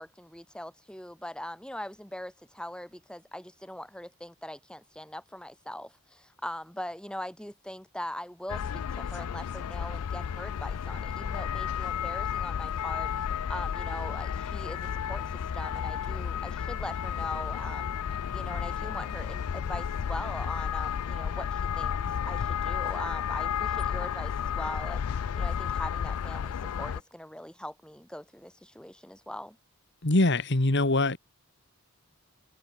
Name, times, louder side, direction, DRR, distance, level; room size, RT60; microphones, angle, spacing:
voice 1, 0.0-13.1 13.5-17.9 18.3-22.0 22.3-25.0 25.4-29.6, left 1 dB, 5° left, 4.0 m, -41 dB
sound 1, 8.5-27.0, left 8 dB, 90° left, 0.4 m, -32 dB
voice 2, 30.0-31.2, left 2 dB, 55° left, 1.9 m, -23 dB
head